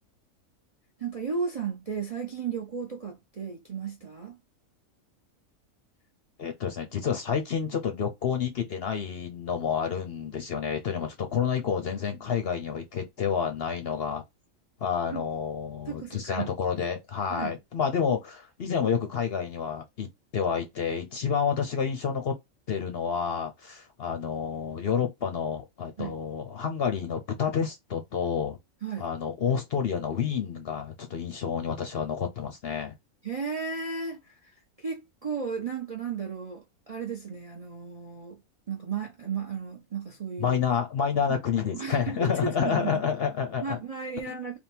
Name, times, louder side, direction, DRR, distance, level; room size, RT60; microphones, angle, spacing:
voice 1, 1.0-4.4 15.1-15.2 15.9-16.5 17.3-17.6 26.0-26.1 28.8-29.1 33.2-38.4 38.7-40.6 41.7-43.0 43.6-44.6, right 5 dB, 40° right, 0.5 m, -34 dB
voice 2, 6.4-14.2 14.8-22.4 22.7-28.6 29.0-32.9 40.4-43.8 44.3-44.4, left 7 dB, 55° left, 0.8 m, -29 dB
3.6 x 2.3 x 4.3 m
omnidirectional pair, 1.5 m